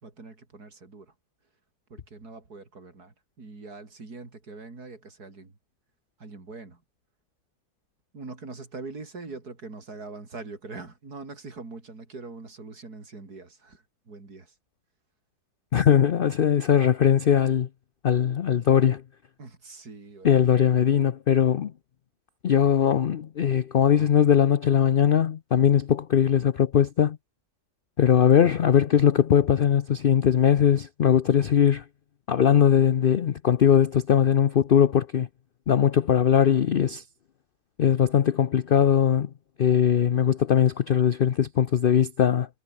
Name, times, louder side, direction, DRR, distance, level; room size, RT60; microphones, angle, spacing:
voice 1, 0.0-1.1 1.9-5.6 6.2-6.8 8.1-14.5 19.4-20.4 20.8-21.1, right 3 dB, 70° right, 4.3 m, -43 dB
voice 2, 15.7-17.7 18.0-19.0 20.2-21.7 22.4-27.2 28.0-31.8 32.3-35.3 35.7-37.0 37.8-39.3 39.6-42.5, left 8 dB, 65° left, 0.5 m, -20 dB
omnidirectional pair, 1.8 m